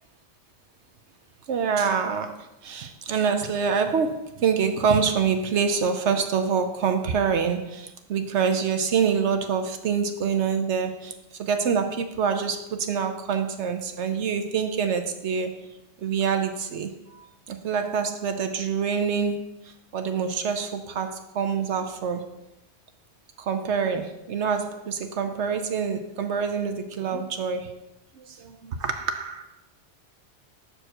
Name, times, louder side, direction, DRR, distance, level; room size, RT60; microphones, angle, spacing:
voice 1, 1.5-2.4 2.6-11.1 11.4-15.6 16.0-16.9 17.5-19.5 19.9-22.3 23.5-27.7 28.2-29.4, right 6 dB, 75° right, 7 dB, 1.0 m, -26 dB
6.2 x 4.6 x 6.4 m, 0.90 s
omnidirectional pair, 1.2 m